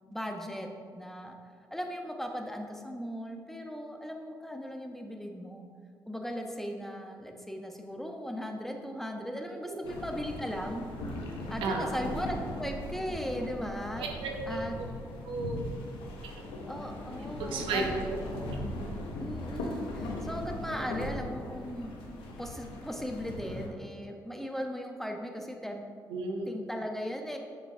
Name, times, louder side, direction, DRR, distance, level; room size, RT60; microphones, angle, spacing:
voice 1, 0.1-1.4 1.7-5.6 6.1-10.9 11.5-14.1 14.5-14.7 16.7-18.0 19.2-21.9 22.4-25.8 26.5-27.4, equal, 5° left, 3 dB, 0.8 m, -37 dB
sound 1, 9.8-23.7, left 1 dB, 85° left, 0.8 m, -39 dB
voice 2, 11.6-11.9 14.0-14.7 15.3-15.6 17.4-17.8 26.1-26.6, right 3 dB, 80° right, 1 dB, 0.7 m, -33 dB
6.8 x 5.7 x 2.7 m, 2.1 s
supercardioid pair, 50°, 9 cm